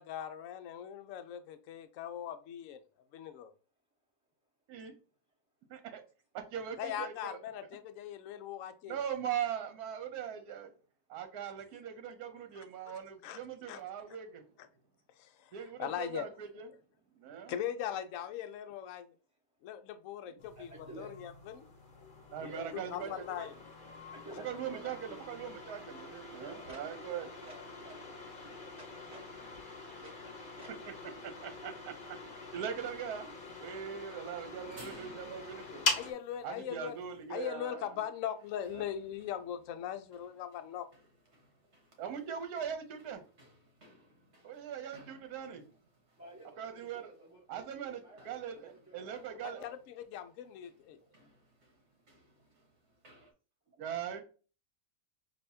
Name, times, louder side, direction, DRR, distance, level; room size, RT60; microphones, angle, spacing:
voice 1, 0.0-2.8 3.1-3.5 6.8-9.0 11.4-11.5 13.2-13.4 13.6-13.8 15.2-15.5 15.8-16.3 17.5-19.1 19.6-20.7 21.0-21.7 22.4-22.5 22.9-23.5 36.0-37.0 37.3-40.9 49.4-49.8 50.1-51.0, left 10 dB, 70° left, 10 dB, 0.8 m, -40 dB
voice 2, 5.7-6.0 6.3-7.4 8.9-10.7 11.1-14.4 15.5-16.7 17.1-17.5 20.3-20.4 22.3-23.1 23.4-23.5 24.4-27.3 31.2-32.2 32.5-33.3 33.6-35.9 36.4-37.9 38.7-38.9 42.0-43.2 44.4-45.6 46.6-47.1 47.5-48.0 48.2-49.6 53.8-54.2, right 8 dB, 70° right, 8 dB, 1.2 m, -40 dB
sound 1, 20.4-36.1, left 3 dB, 40° left, 0.9 m, -43 dB
voice 3, 20.5-21.1 22.4-23.2 24.1-25.2 26.3-29.4 30.0-30.7 31.9-32.5 33.7-34.4 46.2-49.7 51.0-51.1 53.7-53.8, right 1 dB, 15° right, -7 dB, 0.9 m, -53 dB
sound 2, 34.5-53.3, right 1 dB, 45° right, 1.5 m, -61 dB
6.5 x 2.8 x 2.7 m, 0.37 s
omnidirectional pair, 1.8 m